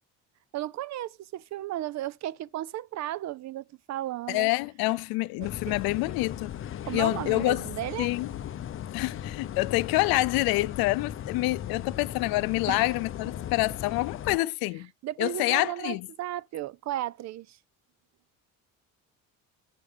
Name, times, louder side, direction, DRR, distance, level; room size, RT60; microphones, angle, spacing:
voice 1, 0.5-4.5 5.4-5.8 6.8-8.1 12.7-12.9 15.0-17.6, right 13 dB, 50° right, 0.6 m, -34 dB
voice 2, 4.3-6.6 6.9-7.7 8.0-8.3 8.9-14.9 15.2-16.1, left 20 dB, 85° left, 0.6 m, -27 dB
sound 1, 5.4-14.4, left 10 dB, 35° left, 0.6 m, -37 dB
8.3 x 3.3 x 6.6 m
cardioid pair, 100°, 35 cm